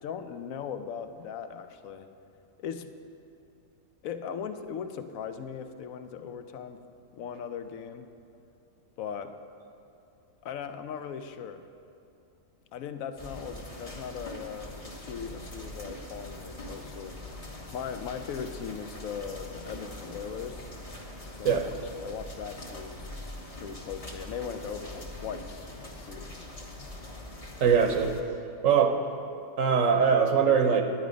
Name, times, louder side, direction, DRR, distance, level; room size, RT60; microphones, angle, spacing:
voice 1, 0.0-2.1 2.6-2.9 4.0-6.8 7.1-8.1 9.0-9.4 10.4-11.6 12.7-17.2 17.7-20.6 21.4-21.6 22.0-23.1 23.6-26.4, left 7 dB, 75° left, 9 dB, 1.0 m, -39 dB
sound 1, 13.2-28.2, left 1 dB, 25° left, 1.1 m, -43 dB
voice 2, 27.6-28.2 28.6-29.0 29.6-30.8, right 6 dB, 70° right, 5 dB, 1.0 m, -22 dB
10.5 x 9.7 x 5.1 m, 2.6 s
omnidirectional pair, 1.5 m